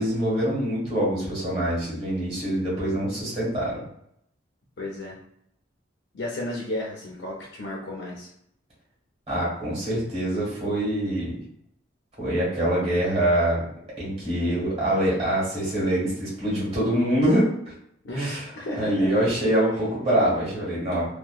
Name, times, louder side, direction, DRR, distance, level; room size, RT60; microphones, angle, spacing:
voice 1, 0.0-3.8 9.3-11.3 12.2-13.6 14.0-17.7 18.2-18.4 18.8-21.2, right 1 dB, 30° right, -7 dB, 1.4 m, -24 dB
voice 2, 4.8-5.2 6.1-8.3 18.0-19.2 20.1-20.2, left 1 dB, 65° left, -4 dB, 0.5 m, -33 dB
2.8 x 2.1 x 2.3 m, 0.72 s
head